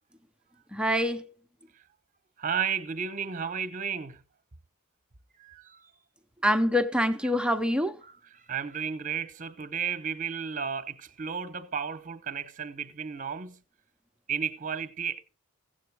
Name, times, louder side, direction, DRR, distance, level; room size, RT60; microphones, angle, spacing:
voice 1, 0.7-1.2 6.4-8.0, equal, 5° right, 0.6 m, -25 dB
voice 2, 2.4-4.2 5.4-5.9 8.0-13.6 14.3-15.2, right 7 dB, 35° right, 0.9 m, -33 dB
16.0 x 7.7 x 4.7 m
head